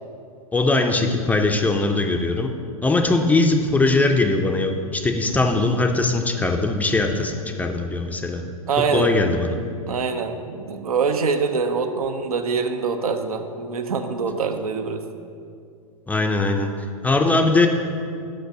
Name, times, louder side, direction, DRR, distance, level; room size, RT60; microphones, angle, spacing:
voice 1, 0.5-2.5 2.8-8.4 8.9-9.6 16.1-17.7, left 2 dB, 10° left, 4 dB, 0.4 m, -20 dB
voice 2, 8.7-9.1 9.9-15.0, right 5 dB, 80° right, 7 dB, 0.7 m, -24 dB
5.9 x 5.3 x 6.5 m, 2.4 s
hypercardioid pair, 110°, 18 cm